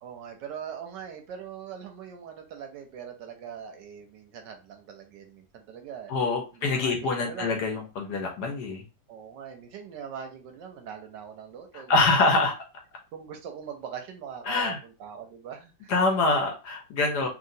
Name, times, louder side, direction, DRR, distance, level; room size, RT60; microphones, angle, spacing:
voice 1, 0.0-6.1 6.5-7.8 9.1-12.1 12.4-12.5 13.1-15.9 17.2-17.3, right 7 dB, 75° right, 5 dB, 1.1 m, -41 dB
voice 2, 6.1-8.8 11.9-12.5 14.5-14.8 15.9-17.3, left 3 dB, 65° left, 3 dB, 1.1 m, -25 dB
2.9 x 2.8 x 2.6 m, 0.31 s
omnidirectional pair, 2.1 m